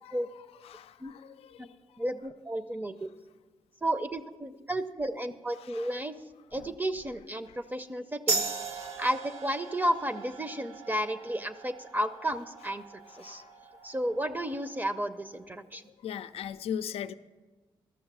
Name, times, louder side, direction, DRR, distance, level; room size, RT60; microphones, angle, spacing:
voice 1, 0.6-1.8 5.6-6.0 6.5-6.7 8.8-9.0 13.2-13.5 16.0-17.1, left 8 dB, 80° left, 12 dB, 0.4 m, -39 dB
voice 2, 2.0-3.1 3.8-6.2 6.5-12.8 13.1-13.4 13.8-15.8, right 1 dB, 20° right, 10 dB, 0.6 m, -32 dB
sound 1, 8.3-15.4, right 4 dB, 85° right, 0.9 m, -38 dB
13.5 x 6.3 x 6.0 m, 1.3 s
cardioid pair, 70°, 10 cm